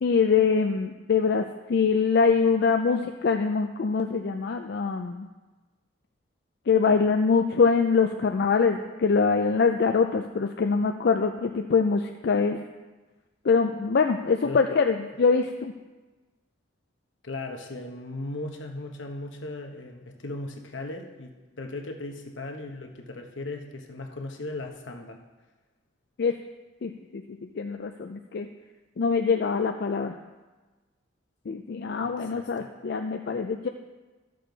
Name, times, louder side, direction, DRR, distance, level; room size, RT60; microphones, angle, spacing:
voice 1, 0.0-5.3 6.7-12.6 13.4-15.7 26.2-26.4 26.8-28.5 29.0-30.2 31.5-33.7, left 5 dB, 60° left, 5 dB, 0.4 m, -24 dB
voice 2, 17.2-25.2 32.0-32.7, left 2 dB, 80° left, 3 dB, 1.1 m, -37 dB
13.0 x 6.6 x 4.0 m, 1.2 s
head